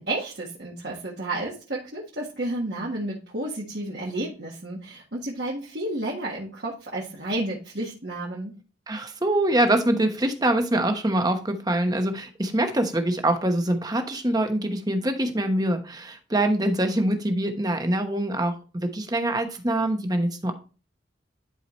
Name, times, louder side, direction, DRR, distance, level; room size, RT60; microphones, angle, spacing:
voice 1, 0.0-8.5, right 1 dB, 60° right, -4 dB, 1.7 m, -31 dB
voice 2, 8.9-20.5, right 1 dB, 20° right, 6 dB, 1.0 m, -24 dB
11.0 x 4.7 x 3.1 m, 0.34 s
head